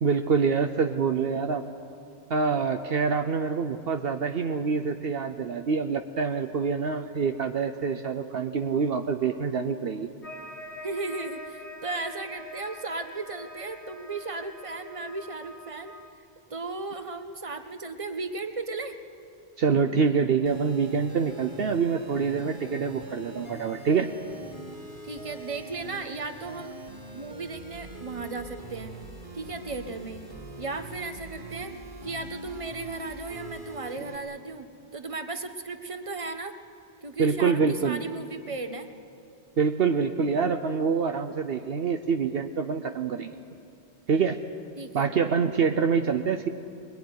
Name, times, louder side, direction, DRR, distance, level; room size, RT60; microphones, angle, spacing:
voice 1, 0.0-1.6 2.3-10.1 19.6-24.1 37.2-38.0 39.6-43.3 44.1-44.4 44.9-46.5, right 5 dB, 60° right, 7 dB, 1.0 m, -26 dB
sound 1, 10.2-16.1, left 1 dB, 85° left, 2.5 m, -44 dB
voice 2, 10.8-15.9 16.5-19.0 25.0-26.7 27.1-28.9 29.3-30.2 30.6-31.7 32.0-34.7 34.9-36.5 37.0-38.9 44.8-45.1, right 3 dB, 30° right, 7 dB, 1.3 m, -35 dB
sound 2, 20.4-34.2, right 1 dB, 45° right, 2.7 m, -43 dB
22.0 x 22.0 x 9.5 m, 2.6 s
omnidirectional pair, 1.1 m